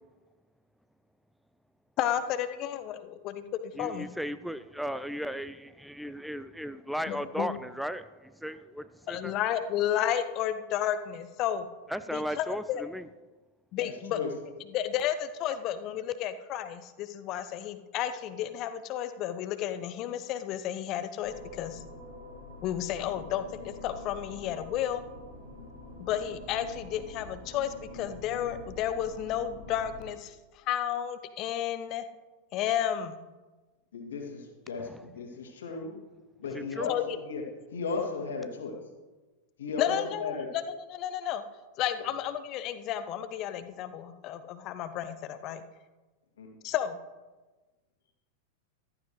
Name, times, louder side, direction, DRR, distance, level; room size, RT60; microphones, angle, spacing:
voice 1, 2.0-4.1 7.1-7.5 9.1-11.7 12.1-12.8 13.7-14.2 14.7-21.8 22.6-25.0 26.0-32.0 32.5-33.2 36.8-37.2 39.8-40.6 40.9-41.4 41.8-45.6 46.6-47.0, left 10 dB, 40° left, 11 dB, 0.8 m, -32 dB
voice 2, 3.8-9.3 11.9-13.1 34.8-35.0 36.5-36.9, equal, ahead, 13 dB, 0.4 m, -36 dB
voice 3, 13.8-14.3 33.9-36.0 36.4-37.0 37.2-37.4 37.7-38.8 39.6-40.5 46.4-46.5, left 5 dB, 65° left, 1 dB, 2.3 m, -35 dB
sound 1, 21.2-30.0, left 2 dB, 75° right, 4.3 m, -46 dB
14.5 x 14.0 x 3.2 m, 1.2 s
figure-of-eight pair, 90°, 0 cm